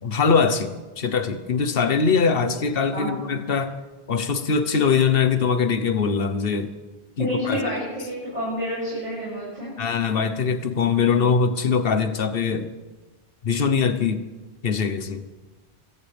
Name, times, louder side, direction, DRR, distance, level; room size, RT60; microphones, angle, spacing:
voice 1, 0.0-3.7 4.1-6.7 7.2-7.6 9.8-12.7 13.4-14.2 14.6-15.2, left 5 dB, 60° left, 10 dB, 1.2 m, -22 dB
voice 2, 7.2-9.7, equal, 40° right, -9 dB, 7.3 m, -28 dB
27.0 x 15.5 x 3.5 m, 1.2 s
omnidirectional pair, 1.2 m